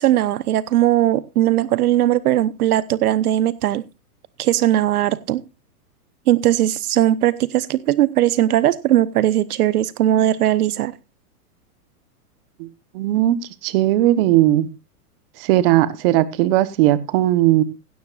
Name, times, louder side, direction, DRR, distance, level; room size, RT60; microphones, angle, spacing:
voice 1, 0.0-3.8 4.4-5.4 6.3-10.9, right 13 dB, 70° right, 18 dB, 1.0 m, -18 dB
voice 2, 12.9-13.4 13.6-14.7 15.4-17.6, right 14 dB, 40° right, 16 dB, 1.2 m, -17 dB
16.5 x 13.5 x 2.5 m, 0.27 s
hypercardioid pair, 150°, 46 cm